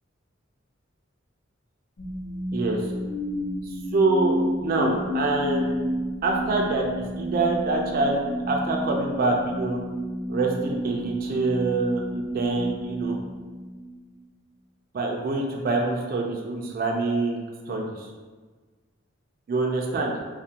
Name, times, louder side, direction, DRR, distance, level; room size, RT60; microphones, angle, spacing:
sound 1, 2.0-14.1, equal, 80° left, 0.7 m, -31 dB
voice 1, 2.5-2.9 3.6-5.8 6.2-9.8 10.3-13.2 14.9-17.4 17.7-18.1 19.5-20.2, right 3 dB, 45° right, 0 dB, 0.3 m, -25 dB
2.4 x 2.1 x 2.8 m, 1.4 s
head